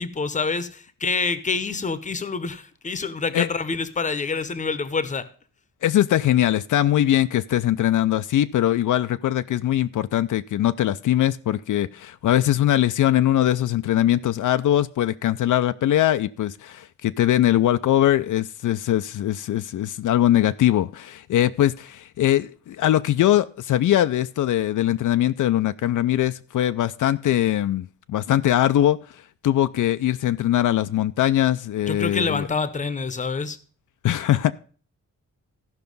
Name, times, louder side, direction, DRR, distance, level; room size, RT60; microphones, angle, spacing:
voice 1, 0.0-5.3 31.9-33.6, left 4 dB, 25° left, 0.8 m, -27 dB
voice 2, 5.8-29.0 29.4-32.4 34.0-34.5, left 12 dB, 80° left, 0.5 m, -21 dB
14.0 x 5.7 x 5.3 m
wide cardioid pair, 150°, 31 cm